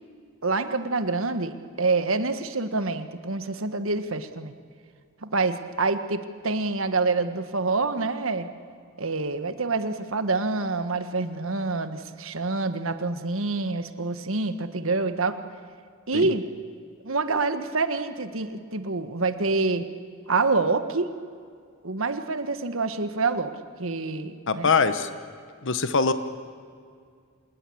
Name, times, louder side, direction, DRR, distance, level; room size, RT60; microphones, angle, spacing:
voice 1, 0.4-4.6 5.2-8.5 9.0-15.4 16.1-16.4 17.0-19.8 20.3-21.1 21.8-23.5 23.8-24.7, right 3 dB, 70° right, 10 dB, 1.5 m, -26 dB
voice 2, 24.5-25.1 25.6-26.1, left 4 dB, 65° left, 11 dB, 1.2 m, -22 dB
26.0 x 20.5 x 8.6 m, 2.2 s
head